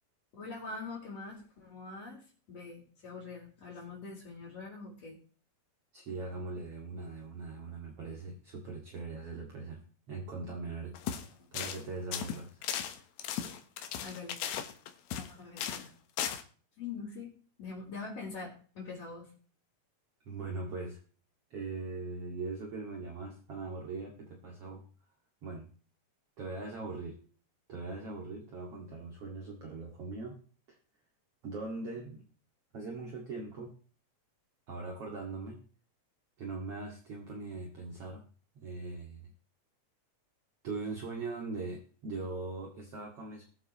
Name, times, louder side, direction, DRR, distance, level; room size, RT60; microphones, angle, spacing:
voice 1, 0.3-5.2 11.0-11.5 14.0-14.6 15.1-15.9 16.8-17.3 17.6-19.3, left 4 dB, 45° left, -6 dB, 5.0 m, -44 dB
voice 2, 5.9-9.8 10.1-11.0 11.5-12.6 20.2-21.0 21.5-24.8 25.4-25.7 26.4-27.2 27.7-30.4 30.7-30.8 31.4-32.2 32.7-33.7 34.7-35.6 36.4-38.2 38.5-39.3 40.6-43.5, right 3 dB, 45° right, 0 dB, 2.8 m, -40 dB
sound 1, 10.9-11.3 11.5-11.8 12.1-15.3 15.6-15.9 16.2-16.4, left 9 dB, 90° left, 3.1 m, -36 dB
21.5 x 7.9 x 3.1 m, 0.41 s
omnidirectional pair, 4.2 m